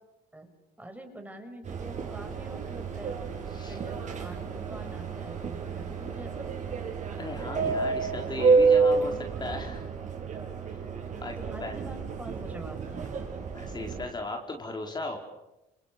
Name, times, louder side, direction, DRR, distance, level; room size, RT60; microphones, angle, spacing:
voice 1, 0.8-3.3 3.7-6.5 11.4-13.0, right 1 dB, 10° right, 5 dB, 6.2 m, -45 dB
Subway metro underground, 1.6-14.0, right 4 dB, 45° right, 7.2 m, -29 dB
voice 2, 7.2-9.9 10.7-10.8 11.2-11.8 13.5-15.2, left 2 dB, 25° left, 2 dB, 4.5 m, -37 dB
29.0 x 28.5 x 7.0 m, 0.95 s
cardioid pair, 110°, 17 cm